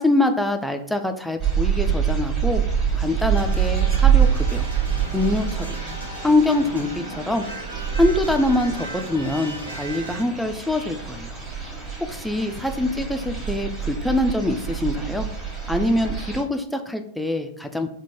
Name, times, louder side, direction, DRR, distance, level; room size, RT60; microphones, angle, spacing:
voice 1, 0.0-2.6 2.9-4.7 5.1-5.8 6.2-7.5 7.9-11.4 12.1-15.3 15.7-17.9, left 2 dB, ahead, 5 dB, 0.4 m, -24 dB
sound 1, 1.4-16.4, right 8 dB, 20° right, 1.4 m, -25 dB
sound 2, 3.3-10.2, right 1 dB, 75° right, 0.7 m, -37 dB
3.6 x 2.2 x 4.2 m, 0.67 s
figure-of-eight pair, 90°, 0 cm